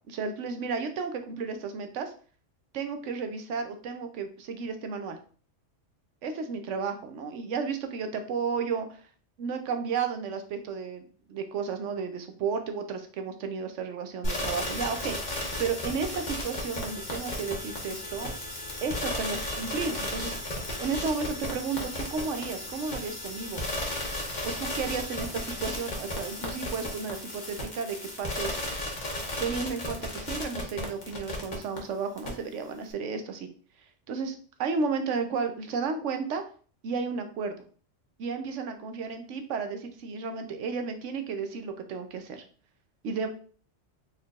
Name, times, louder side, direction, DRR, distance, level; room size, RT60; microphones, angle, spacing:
voice 1, 0.1-2.1 2.7-5.2 6.2-9.0 9.4-15.2 15.6-18.3 18.8-20.4 20.8-23.6 24.4-28.6 29.4-33.5 34.1-36.4 36.8-37.5 38.2-42.4 43.0-43.3, right 5 dB, 80° right, 6 dB, 1.0 m, -33 dB
sound 1, 14.2-31.8 32.2-32.3, left 1 dB, 40° left, 1.1 m, -34 dB
4.2 x 3.6 x 2.4 m, 0.41 s
omnidirectional pair, 1.2 m